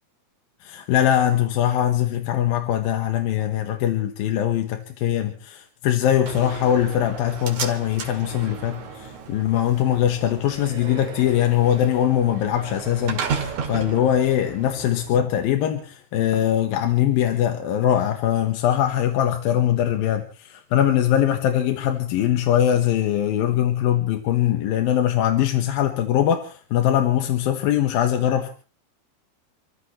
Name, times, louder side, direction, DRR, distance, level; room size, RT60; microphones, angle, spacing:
voice 1, 0.6-28.5, left 11 dB, 75° left, 6 dB, 2.9 m, -22 dB
Slam, 6.3-15.3, right 6 dB, 55° right, 3.2 m, -34 dB
29.5 x 14.5 x 3.2 m, 0.37 s
omnidirectional pair, 4.5 m